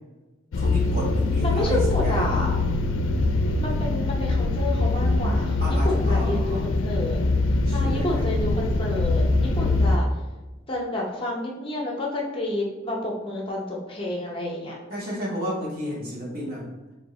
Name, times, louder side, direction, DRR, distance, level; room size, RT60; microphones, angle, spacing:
sound 1, 0.5-10.0, left 2 dB, 80° left, 0.4 m, -23 dB
voice 1, 0.5-2.5 5.6-6.7 7.7-8.3 14.9-16.6, equal, 50° right, -4 dB, 1.2 m, -32 dB
voice 2, 1.4-2.6 3.6-5.5 5.8-7.2 7.7-10.1 10.7-14.8, left 1 dB, 30° left, -2 dB, 0.7 m, -29 dB
2.8 x 2.7 x 4.1 m, 1.2 s
head